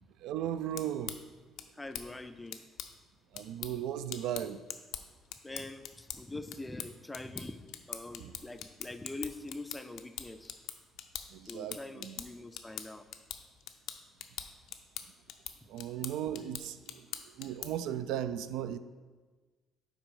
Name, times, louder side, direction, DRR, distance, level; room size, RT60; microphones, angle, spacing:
voice 1, 0.2-1.1 3.3-4.6 8.2-8.3 11.3-12.2 15.7-16.9 17.4-18.8, right 10 dB, 90° right, 0.3 m, -36 dB
sound 1, 0.5-17.9, left 10 dB, 75° left, 0.4 m, -45 dB
voice 2, 1.8-2.6 5.4-7.6 7.9-10.5 11.5-13.1, left 2 dB, 10° left, 0.3 m, -43 dB
5.8 x 4.2 x 5.4 m
cardioid pair, 145°, 0 cm